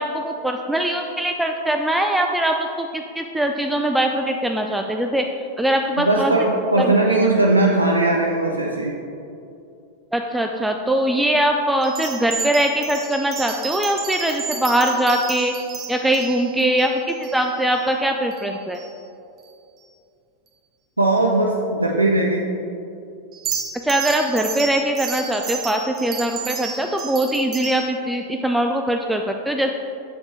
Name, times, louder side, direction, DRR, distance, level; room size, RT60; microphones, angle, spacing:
voice 1, 0.0-5.2 5.6-6.3 6.8-7.2 10.1-15.5 15.9-18.8 23.8-29.7, right 1 dB, 5° right, 3 dB, 0.3 m, -22 dB
voice 2, 6.0-9.0 21.0-22.5, right 2 dB, 85° right, -1 dB, 0.5 m, -19 dB
sound 1, 11.8-17.8 18.3-18.5 18.7-18.9 23.3-27.8, right 6 dB, 30° right, 0.8 m, -32 dB
7.2 x 7.0 x 3.2 m, 2.6 s
figure-of-eight pair, 90°, 0 cm